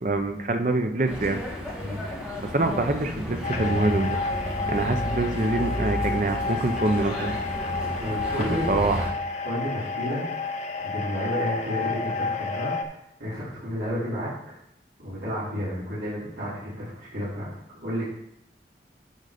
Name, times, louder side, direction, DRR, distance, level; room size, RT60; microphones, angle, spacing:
voice 1, 0.0-1.4 2.4-4.2 4.7-7.4 8.7-9.1, right 2 dB, 45° right, 6 dB, 0.7 m, -25 dB
sound 1, 1.1-9.1, equal, 5° right, 1.7 m, -32 dB
sound 2, 3.4-12.8, left 4 dB, 40° left, 0.7 m, -31 dB
voice 2, 8.0-8.7 9.4-10.2 10.8-14.5 15.0-17.5 17.8-18.1, equal, 85° right, -12 dB, 3.5 m, -31 dB
10.5 x 4.0 x 5.1 m, 0.81 s
head